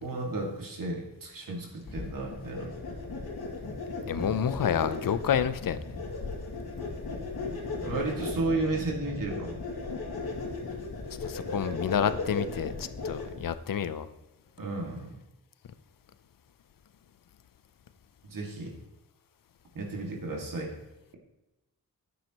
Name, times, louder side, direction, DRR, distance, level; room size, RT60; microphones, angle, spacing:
voice 1, 0.0-2.7 4.1-4.3 7.8-9.6 11.4-11.6 14.6-15.2 18.3-18.7 19.7-20.7, right 2 dB, 65° right, 0 dB, 2.2 m, -33 dB
sound 1, 1.8-13.5, left 3 dB, 90° left, 2.5 m, -36 dB
voice 2, 4.1-5.8 11.2-14.1, left 8 dB, 65° left, 13 dB, 0.7 m, -29 dB
11.5 x 9.3 x 3.0 m, 1.0 s
wide cardioid pair, 155°, 36 cm